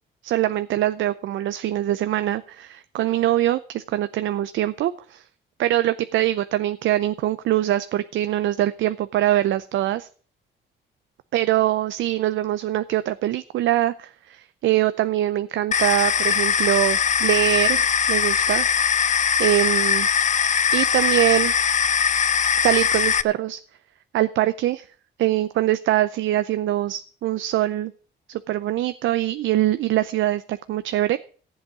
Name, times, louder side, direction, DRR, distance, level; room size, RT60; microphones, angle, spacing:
voice 1, 0.2-5.2 5.6-10.1 11.3-17.8 18.1-20.1 20.7-21.5 22.6-23.6 24.1-24.9 25.2-27.9 28.3-31.2, right 13 dB, 75° right, 12 dB, 0.6 m, -23 dB
sound 1, 15.7-23.2, left 7 dB, 40° left, 0.6 m, -21 dB
14.0 x 7.9 x 6.0 m, 0.43 s
cardioid pair, 90°, 20 cm